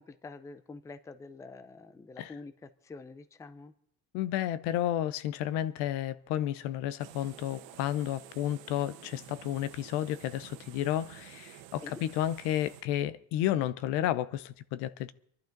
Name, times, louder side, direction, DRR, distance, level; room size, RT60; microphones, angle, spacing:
voice 1, 0.0-3.7 11.8-12.0, left 3 dB, 10° left, 0.5 m, -47 dB
voice 2, 4.1-15.1, left 12 dB, 70° left, 0.8 m, -32 dB
sound 1, 7.0-12.8, right 13 dB, 80° right, 1.3 m, -51 dB
23.5 x 11.5 x 3.9 m
cardioid pair, 150°, 42 cm